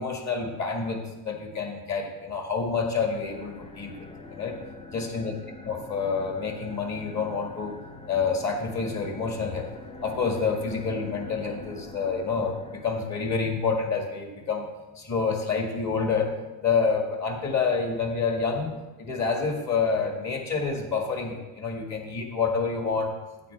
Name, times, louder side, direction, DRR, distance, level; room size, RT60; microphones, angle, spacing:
voice 1, 0.0-3.9 4.4-4.6 4.9-5.3 5.7-7.8 8.1-9.7 10.0-14.7 15.0-16.3 16.6-18.7 19.0-23.1, left 5 dB, 35° left, 2 dB, 2.0 m, -28 dB
sound 1, 2.9-13.4, left 3 dB, 15° left, 0.5 m, -45 dB
9.2 x 9.2 x 3.5 m, 1.1 s
supercardioid pair, 110°, 45 cm